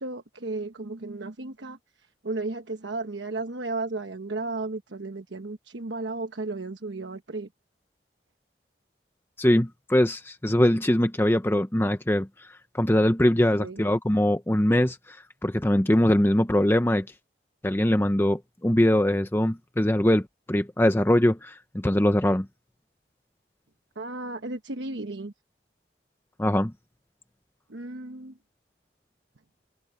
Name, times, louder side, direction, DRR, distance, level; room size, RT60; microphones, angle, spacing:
voice 1, 0.0-1.8 2.2-7.5 13.6-13.8 24.0-25.3 27.7-28.3, right 3 dB, 85° right, 1.2 m, -34 dB
voice 2, 9.4-12.5 12.7-15.2 15.4-17.1 17.6-22.5 26.4-26.7, left 1 dB, 15° left, 0.7 m, -22 dB
head